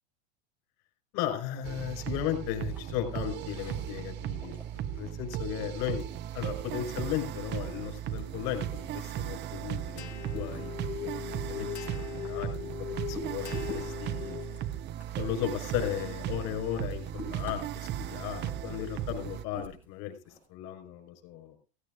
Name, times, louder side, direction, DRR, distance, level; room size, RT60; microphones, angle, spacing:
voice 1, 1.1-6.0 6.3-14.4 15.2-21.6, left 11 dB, 50° left, 5 dB, 5.1 m, -36 dB
sound 1, 1.6-19.4, right 12 dB, 30° right, 0.6 m, -37 dB
sound 2, 1.9-20.5, equal, 5° right, 6.0 m, -50 dB
sound 3, 10.0-14.8, left 12 dB, 80° left, 1.3 m, -39 dB
16.5 x 15.5 x 2.6 m, 0.35 s
supercardioid pair, 125°, 34 cm